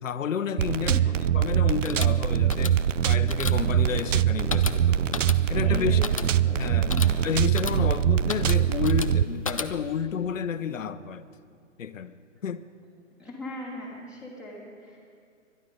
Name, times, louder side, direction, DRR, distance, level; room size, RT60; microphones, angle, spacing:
voice 1, 0.0-1.0 1.3-5.2 5.5-6.0 6.5-6.9 7.2-11.3 11.8-12.1 12.4-12.7, left 7 dB, 85° left, 12 dB, 1.0 m, -30 dB
sound 1, 0.6-9.2, right 10 dB, 75° right, 0.6 m, -23 dB
voice 2, 0.9-1.2 5.2-5.3 5.5-7.2 13.2-15.1, left 1 dB, 5° right, -5 dB, 2.6 m, -39 dB
sound 2, 1.7-10.0, left 4 dB, 30° left, 0.4 m, -36 dB
22.0 x 11.5 x 5.3 m, 2.2 s
hypercardioid pair, 160°, 38 cm